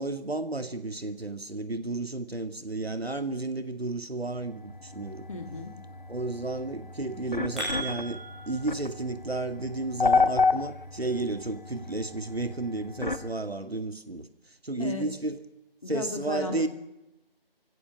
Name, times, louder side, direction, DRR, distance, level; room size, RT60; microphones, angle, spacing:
voice 1, 0.0-5.3 6.1-8.2 8.5-14.3 14.6-15.4 15.9-16.7, right 2 dB, 85° right, 2.2 m, -32 dB
sound 1, 4.4-13.3, left 4 dB, 55° left, 1.3 m, -31 dB
voice 2, 5.3-5.7 14.8-15.1 15.8-16.7, left 3 dB, 35° left, 2.6 m, -35 dB
sound 2, 7.1-8.6, right 2 dB, ahead, 6.4 m, -35 dB
29.5 x 16.0 x 7.6 m
figure-of-eight pair, 170°, 30 cm